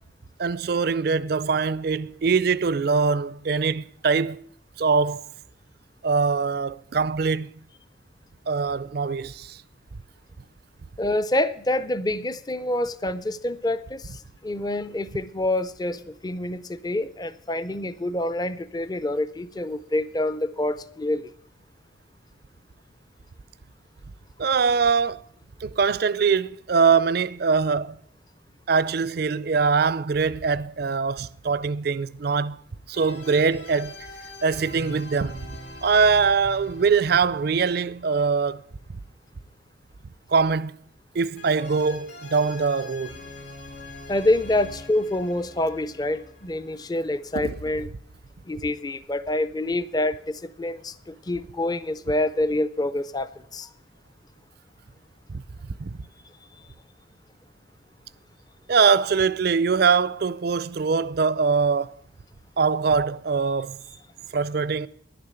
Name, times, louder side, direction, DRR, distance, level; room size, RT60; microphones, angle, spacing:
voice 1, 0.4-4.4 4.8-5.2 6.0-7.5 8.5-9.6 24.4-25.2 25.6-28.0 28.7-32.6 32.9-34.0 34.4-35.4 35.8-38.6 40.3-40.7 41.1-43.2 47.4-47.5 55.3-55.4 55.8-56.0 58.7-61.9 62.6-63.8 64.3-64.9, right 5 dB, 50° right, 0.4 m, -22 dB
voice 2, 11.0-14.0 14.4-21.2 44.1-47.9 48.5-53.7, left 1 dB, 20° left, 0.4 m, -27 dB
sound 1, 32.9-38.9 41.4-47.1, left 1 dB, 65° left, 3.4 m, -43 dB
11.0 x 6.8 x 8.8 m
head